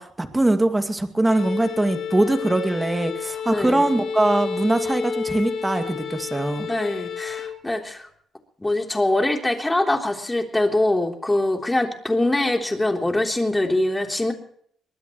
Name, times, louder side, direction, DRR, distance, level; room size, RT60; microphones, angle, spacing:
voice 1, 0.0-6.7, right 2 dB, 15° right, 6 dB, 2.3 m, -22 dB
Bowed string instrument, 1.2-7.6, left 6 dB, 60° left, 3.2 m, -30 dB
voice 2, 3.5-3.8 6.6-8.1 8.6-14.3, left 1 dB, 15° left, 2 dB, 3.4 m, -23 dB
23.0 x 19.0 x 3.2 m, 0.63 s
cardioid pair, 90°, 0 cm